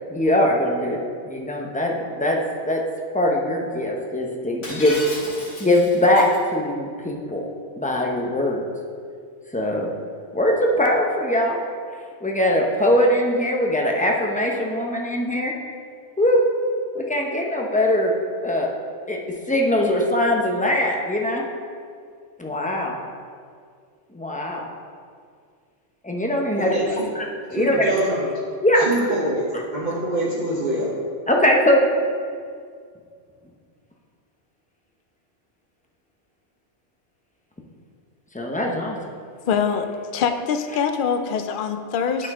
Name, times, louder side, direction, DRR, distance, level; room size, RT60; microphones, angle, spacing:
voice 1, 0.1-1.0 1.2-2.4 2.7-2.8 3.1-4.9 5.6-6.3 6.5-7.4 7.8-8.6 9.5-9.9 10.3-11.6 12.2-15.5 16.2-16.4 16.9-18.1 18.4-18.7 19.1-19.2 19.5-21.4 22.4-23.0 24.1-24.6 26.0-27.9 28.6-29.1 31.3-31.8 38.3-39.0, left 1 dB, 10° left, 0 dB, 0.6 m, -21 dB
Shatter, 4.6-6.4, left 1 dB, 85° left, 2.2 m, -34 dB
voice 2, 26.7-27.1 27.5-28.2 28.9-29.5 29.7-30.9, right 1 dB, 40° right, -8 dB, 1.2 m, -25 dB
voice 3, 39.5-39.9 40.1-42.3, left 6 dB, 55° left, 7 dB, 0.6 m, -23 dB
11.0 x 4.3 x 3.6 m, 2.1 s
omnidirectional pair, 1.2 m